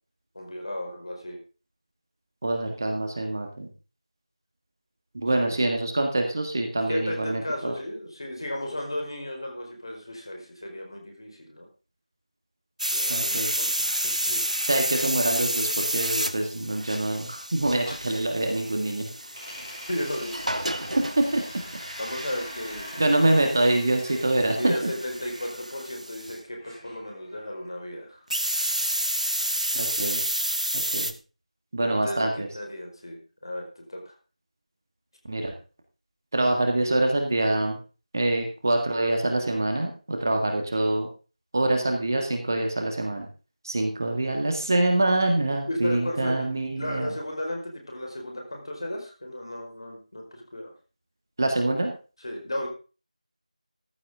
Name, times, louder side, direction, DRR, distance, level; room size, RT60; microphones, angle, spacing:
voice 1, 0.3-1.4 5.4-5.6 6.9-11.7 12.9-14.4 17.9-18.0 19.9-20.4 22.0-23.1 24.5-28.2 31.8-32.3 32.5-34.1 45.7-50.7 52.2-52.7, left 1 dB, 40° left, 2 dB, 4.6 m, -34 dB
voice 2, 2.4-3.7 5.1-7.7 13.1-13.5 14.6-19.1 20.9-21.4 23.0-24.7 29.7-30.2 30.9-31.1 31.7-32.5 35.3-35.5 36.3-37.8 38.1-41.1 41.5-43.3 43.6-47.1 51.4-51.9, right 2 dB, 25° right, 3 dB, 1.8 m, -25 dB
sound 1, 12.8-26.4 28.3-31.1, right 1 dB, 75° right, 1.5 m, -30 dB
sound 2, 17.5-18.9 19.3-25.5 26.6-27.7, equal, ahead, 7.4 m, -43 dB
14.5 x 11.0 x 3.6 m, 0.34 s
figure-of-eight pair, 170°, 4 cm